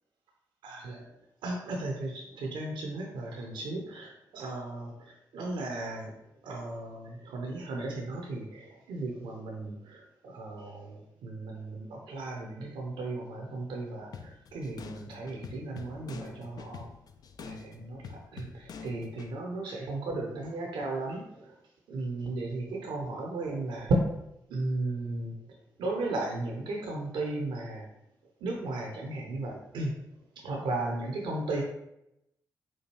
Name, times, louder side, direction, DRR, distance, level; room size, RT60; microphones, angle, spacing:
voice 1, 0.6-1.1 1.4-16.9 17.4-21.5 21.9-24.1 24.5-25.3 25.8-27.9 28.4-29.9 30.4-31.6, right 2 dB, 70° right, 0 dB, 0.6 m, -35 dB
sound 1, 14.1-19.3, left 6 dB, 50° left, 0.4 m, -46 dB
4.4 x 2.3 x 3.0 m, 0.83 s
hypercardioid pair, 40°, 8 cm